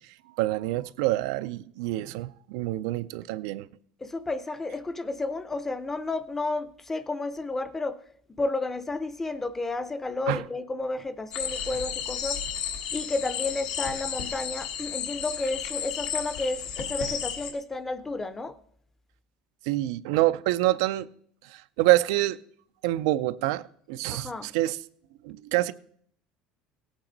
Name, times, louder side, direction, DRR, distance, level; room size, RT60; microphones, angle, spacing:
voice 1, 0.4-3.7 10.3-10.4 19.7-21.1 21.5-22.4 22.8-23.6 23.9-24.8 25.2-25.7, right 16 dB, 90° right, 0.4 m, -26 dB
voice 2, 4.0-8.0 8.4-12.4 12.9-18.5 24.1-24.5, left 3 dB, 10° left, 0.5 m, -31 dB
sound 1, 11.3-17.5, left 8 dB, 85° left, 1.5 m, -33 dB
16.5 x 8.9 x 3.9 m
cardioid pair, 155°, 3 cm